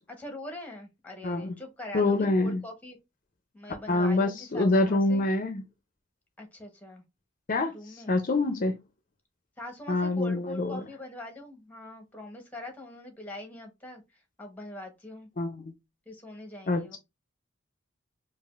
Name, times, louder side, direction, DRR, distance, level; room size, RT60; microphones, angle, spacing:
voice 1, 0.1-3.0 3.5-5.2 6.4-7.0 7.7-8.2 9.6-14.0 14.4-15.3 16.1-17.0, left 1 dB, 10° left, 0.9 m, -43 dB
voice 2, 1.2-1.6 1.9-2.6 3.9-5.6 7.5-8.7 9.9-10.8 15.4-15.7 16.7-17.0, left 2 dB, 45° left, 0.5 m, -26 dB
4.9 x 2.5 x 2.4 m
head